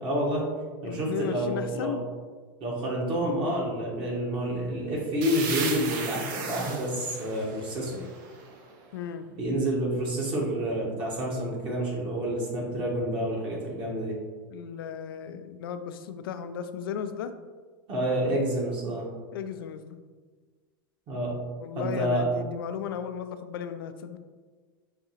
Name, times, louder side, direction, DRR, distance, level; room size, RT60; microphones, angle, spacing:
voice 1, 0.0-0.4 0.8-2.0 2.6-8.0 9.4-14.2 17.9-19.1 21.1-21.4 21.8-22.3, right 1 dB, 45° right, -3 dB, 1.2 m, -29 dB
voice 2, 0.8-2.0 8.9-9.3 14.5-17.3 19.3-20.0 21.6-24.2, left 7 dB, 80° left, 9 dB, 0.4 m, -35 dB
sound 1, 5.2-8.8, right 5 dB, 60° right, 0.6 m, -36 dB
5.7 x 2.6 x 2.9 m, 1.5 s
hypercardioid pair, 105°, 12 cm